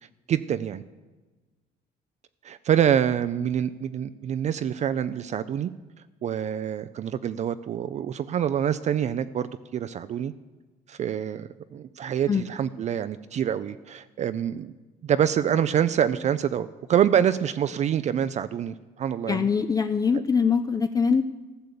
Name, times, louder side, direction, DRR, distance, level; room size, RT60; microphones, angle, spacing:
voice 1, 0.3-0.8 2.4-5.7 6.2-10.3 10.9-14.7 15.0-19.5, right 9 dB, 45° right, 12 dB, 0.4 m, -26 dB
voice 2, 19.3-21.2, left 5 dB, 20° left, 9 dB, 0.4 m, -23 dB
14.5 x 6.8 x 6.8 m, 1.3 s
cardioid pair, 110°, 17 cm